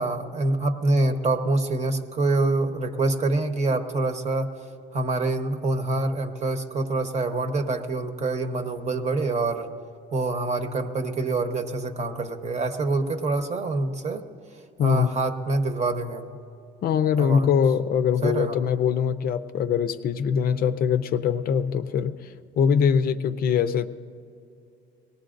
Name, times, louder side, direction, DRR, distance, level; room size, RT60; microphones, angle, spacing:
voice 1, 0.0-4.5 4.9-9.7 10.1-14.2 14.8-16.4 17.2-17.5 18.2-18.6, right 2 dB, 35° right, 7 dB, 1.0 m, -26 dB
voice 2, 14.8-15.2 16.8-22.3 22.6-23.9, left 7 dB, 50° left, 9 dB, 0.5 m, -22 dB
22.0 x 18.5 x 2.5 m, 2.5 s
cardioid pair, 130°, 20 cm